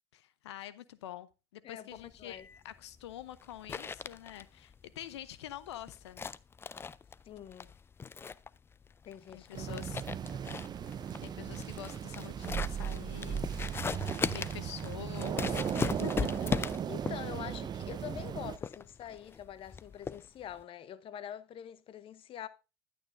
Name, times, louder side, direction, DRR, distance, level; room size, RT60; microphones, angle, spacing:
voice 1, 0.1-6.3 9.3-10.0 11.2-13.5 14.2-16.3, left 12 dB, 85° left, 0.7 m, -46 dB
sound 1, 2.0-20.6, left 5 dB, 15° left, 0.4 m, -39 dB
voice 2, 7.2-7.7 9.0-9.8 10.3-10.4 16.9-22.5, left 10 dB, 40° left, 0.8 m, -45 dB
sound 2, 9.5-18.6, right 8 dB, 30° right, 0.6 m, -37 dB
11.5 x 8.7 x 2.6 m
hypercardioid pair, 90°, 14 cm